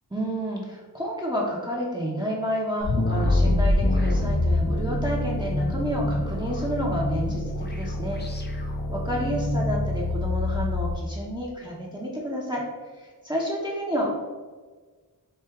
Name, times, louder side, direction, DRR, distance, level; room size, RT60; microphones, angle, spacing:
voice 1, 0.1-8.2 8.9-12.6 13.0-14.2, equal, 10° right, -4 dB, 0.7 m, -30 dB
sound 1, 2.8-11.0, left 2 dB, 25° left, 0.5 m, -25 dB
4.5 x 2.7 x 3.5 m, 1.4 s
wide cardioid pair, 45°, 41 cm